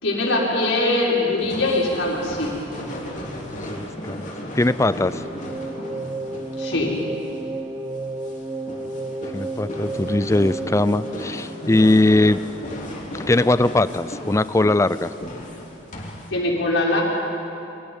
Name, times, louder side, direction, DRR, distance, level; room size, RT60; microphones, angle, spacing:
voice 1, 0.0-2.6 6.6-6.9 16.3-17.0, left 2 dB, 90° left, -3 dB, 5.2 m, -22 dB
sound 1, 1.4-16.3, left 1 dB, 40° left, 3.3 m, -35 dB
voice 2, 3.5-5.2 9.3-12.4 13.1-15.1, left 2 dB, 15° left, 16 dB, 0.4 m, -20 dB
sound 2, 5.1-12.3, right 2 dB, 15° right, 0.9 m, -32 dB
29.0 x 24.0 x 5.5 m, 2.8 s
head